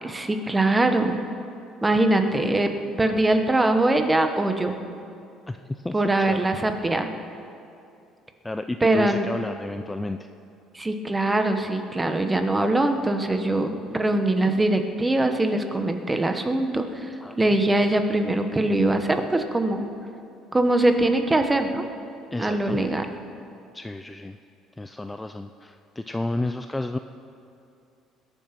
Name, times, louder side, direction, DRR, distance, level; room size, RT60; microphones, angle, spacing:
voice 1, 0.0-1.2 1.8-2.7 3.0-4.7 5.9-7.1 8.8-9.3 10.7-19.9 20.5-21.8 22.4-23.1, right 2 dB, 15° right, 6 dB, 1.2 m, -22 dB
voice 2, 5.5-6.0 6.3-6.4 8.4-10.3 17.2-17.5 22.3-22.8 23.7-24.4 24.8-27.0, left 2 dB, 10° left, 7 dB, 0.4 m, -32 dB
21.0 x 8.8 x 5.9 m, 2.6 s
cardioid pair, 120°, 0 cm